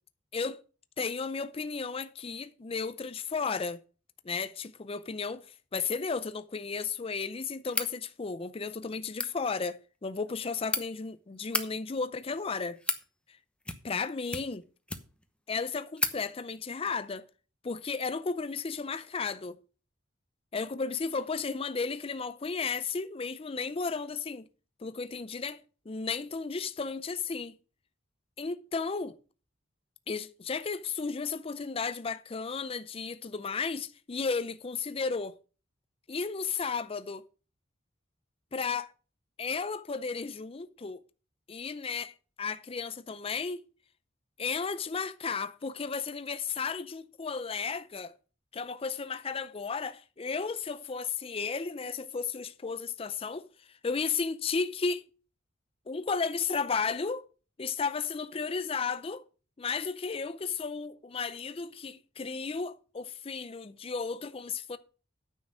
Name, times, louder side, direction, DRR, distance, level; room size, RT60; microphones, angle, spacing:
voice 1, 1.0-3.8 4.2-5.5 5.7-12.8 13.8-14.6 15.5-17.3 17.6-19.6 20.5-24.5 24.8-25.6 25.9-27.6 28.4-29.2 30.1-35.4 36.1-37.2 38.5-38.9 39.4-41.0 41.5-43.6 44.4-48.1 48.5-53.5 53.8-55.0 55.9-57.2 57.6-59.2 59.6-64.8, left 5 dB, 30° left, 0.5 m, -34 dB
sound 1, 7.7-7.9 9.0-9.3 10.3-10.8 11.4-11.7 12.4-13.0 13.6-14.0 14.3-15.2 15.6-15.7 16.0-16.2, left 2 dB, 5° left, 0.9 m, -33 dB
9.4 x 6.5 x 6.2 m
head